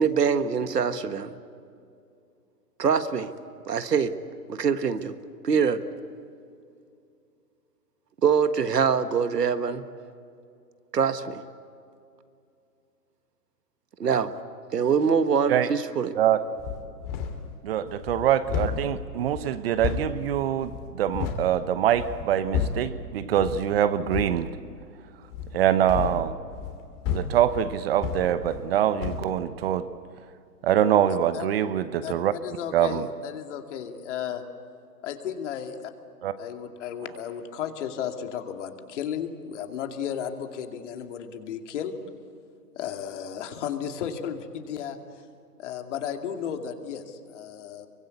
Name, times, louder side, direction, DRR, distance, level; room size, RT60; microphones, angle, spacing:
voice 1, 0.0-1.4 2.8-3.3 3.7-4.2 4.5-5.1 5.4-5.8 8.2-9.8 10.9-11.4 14.0-14.3 14.7-16.1, right 6 dB, 85° right, 1.7 m, -24 dB
sound 1, 16.6-17.5 17.9-21.5 21.9-23.0 23.3-23.7 24.0-24.4 25.3-28.7 29.0-29.3, left 7 dB, 25° left, 2.8 m, -32 dB
voice 2, 17.6-24.5 25.5-26.3 27.1-29.9 30.6-32.3 32.7-33.1 36.2-36.3, right 10 dB, 40° right, 0.9 m, -24 dB
voice 3, 31.1-31.5 32.0-32.1 32.4-34.4 35.0-35.9 36.4-41.9 42.8-45.0 45.6-47.9, left 8 dB, 50° left, 2.5 m, -34 dB
26.5 x 24.0 x 8.5 m
hypercardioid pair, 140°, 47 cm